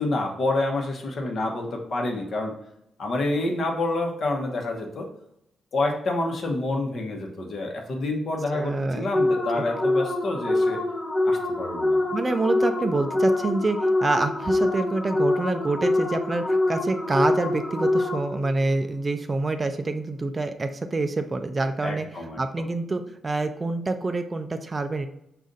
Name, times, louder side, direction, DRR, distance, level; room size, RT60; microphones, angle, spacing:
voice 1, 0.0-2.5 3.0-5.1 5.7-10.8 11.2-12.0 21.8-22.7, left 2 dB, 55° left, 2 dB, 0.9 m, -28 dB
voice 2, 8.5-9.1 9.6-9.7 12.1-22.1 22.4-25.1, right 2 dB, 25° right, 8 dB, 0.3 m, -26 dB
sound 1, 9.1-18.5, left 2 dB, 30° left, 0.6 m, -25 dB
5.3 x 2.4 x 3.8 m, 0.80 s
cardioid pair, 120°, 0 cm